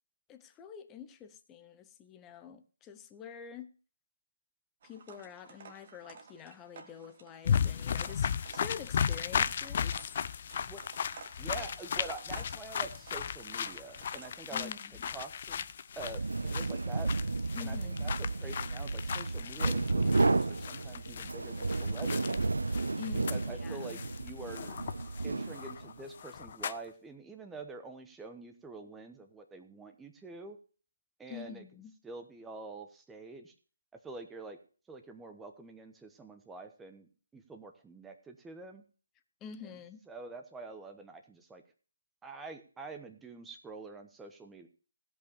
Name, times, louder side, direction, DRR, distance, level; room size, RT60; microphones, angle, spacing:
voice 1, 0.3-3.7 4.8-10.1 14.5-15.1 17.5-18.1 23.0-24.0 31.3-31.9 39.4-40.0, left 8 dB, 15° left, 10 dB, 0.8 m, -47 dB
sound 1, 4.8-14.3, right 5 dB, 40° right, 1.7 m, -53 dB
sound 2, 7.4-26.9, left 7 dB, 45° left, 0.6 m, -36 dB
voice 2, 11.4-14.7 15.1-15.7 15.9-17.1 17.6-18.1 18.4-22.6 23.3-24.8 25.2-30.6 31.2-31.6 32.0-33.5 34.0-34.6 34.9-38.8 39.6-39.7 40.1-41.6 42.2-44.7, right 3 dB, 5° right, 5 dB, 1.2 m, -46 dB
sound 3, 16.0-26.0, right 3 dB, 80° right, 0.5 m, -32 dB
16.0 x 5.5 x 7.0 m, 0.40 s
figure-of-eight pair, 155°, 0 cm